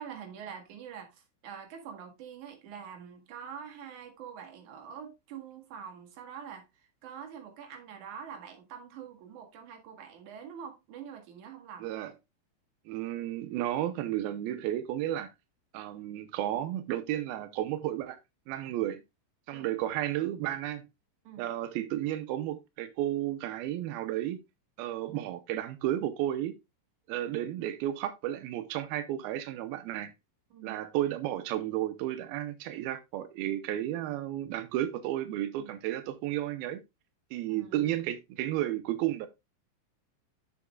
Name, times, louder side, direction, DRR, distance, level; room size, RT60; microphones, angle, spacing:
voice 1, 0.0-6.6 7.0-11.9 19.5-19.7 21.2-21.5 30.5-30.8 35.6-35.7 37.4-37.9, right 7 dB, 55° right, 2.6 m, -45 dB
voice 2, 11.8-12.1 12.9-15.3 15.7-18.2 18.5-19.0 19.5-20.9 21.4-24.4 24.8-26.5 27.1-30.1 30.6-36.8 37.3-39.3, right 13 dB, 90° right, 2.1 m, -33 dB
10.5 x 7.0 x 2.3 m
omnidirectional pair, 5.3 m